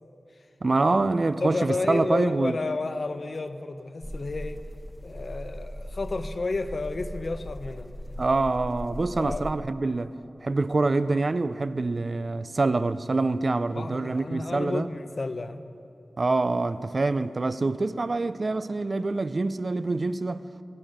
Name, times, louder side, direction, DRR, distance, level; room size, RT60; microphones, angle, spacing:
voice 1, 0.6-2.6 8.2-10.1 10.4-14.9 16.2-20.4, right 3 dB, 45° right, 0.4 m, -25 dB
voice 2, 1.4-4.6 5.0-7.9 9.2-9.5 13.8-15.6, left 3 dB, 50° left, 0.7 m, -31 dB
sound 1, 4.0-9.5, equal, 10° left, 1.0 m, -38 dB
18.0 x 12.5 x 5.0 m
wide cardioid pair, 100°, 0 cm